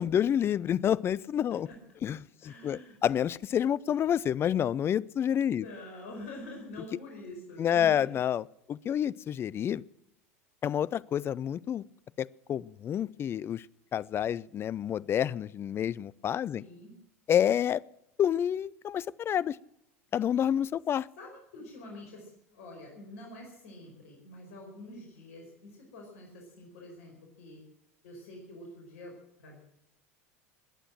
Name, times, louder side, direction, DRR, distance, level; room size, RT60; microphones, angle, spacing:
voice 1, 0.0-1.7 2.0-2.2 2.4-5.6 7.6-8.4 8.7-9.8 10.6-11.8 12.2-13.6 13.9-16.6 17.3-17.8 18.2-19.6 20.1-21.1, left 9 dB, 30° left, 20 dB, 0.5 m, -28 dB
voice 2, 2.4-3.0 5.5-8.1 16.5-16.9 21.2-27.6 28.0-29.1 29.4-29.6, left 1 dB, 65° left, 1 dB, 4.9 m, -46 dB
21.0 x 9.1 x 7.6 m, 0.79 s
figure-of-eight pair, 80°, 8 cm